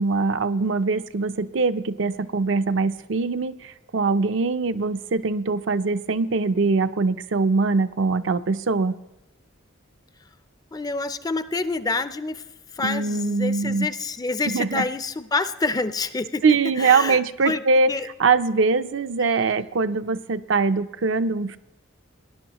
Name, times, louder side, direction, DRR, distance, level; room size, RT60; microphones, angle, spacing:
voice 1, 0.0-9.0 12.8-13.9 14.5-14.8 16.4-17.9 18.2-21.6, right 4 dB, 65° right, 11 dB, 0.5 m, -22 dB
voice 2, 10.7-12.5 12.7-18.1, left 3 dB, 20° left, 13 dB, 0.4 m, -27 dB
18.5 x 11.0 x 2.9 m, 1.1 s
head